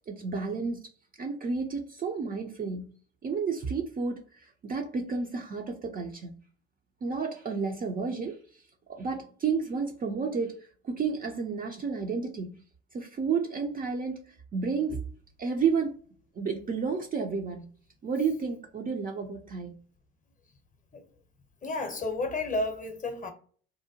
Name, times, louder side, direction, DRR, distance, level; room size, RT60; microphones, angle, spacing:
voice 1, 0.1-0.9 1.2-3.0 3.2-4.2 4.6-6.3 7.0-8.4 8.9-10.6 10.8-12.6 12.9-15.1 15.4-16.0 16.4-17.7 18.0-19.7, right 5 dB, 30° right, 0.4 m, -31 dB
voice 2, 21.6-23.3, left 2 dB, 25° left, 0.7 m, -31 dB
2.7 x 2.1 x 2.7 m
hypercardioid pair, 65°, 32 cm